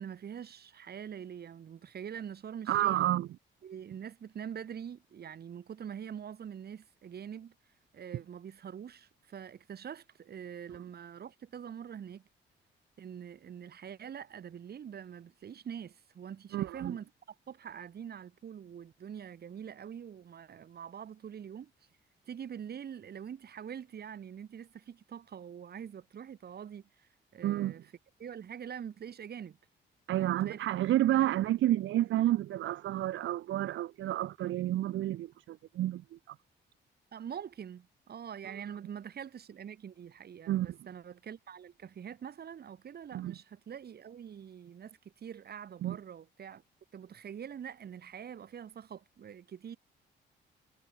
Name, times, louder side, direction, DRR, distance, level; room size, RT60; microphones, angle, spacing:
voice 1, 0.0-3.0 3.6-7.5 7.9-12.2 13.0-17.1 17.5-21.7 22.3-27.8 28.2-29.6 30.1-30.7 31.1-31.2 37.1-46.6 46.9-49.8, right 8 dB, 55° right, 2.5 m, -44 dB
voice 2, 2.7-3.3 16.5-16.9 27.4-27.7 30.1-36.3 38.4-38.5 40.5-40.7 43.1-43.3 45.8-46.0, right 13 dB, 75° right, 0.9 m, -30 dB
cardioid pair, 90°, 20 cm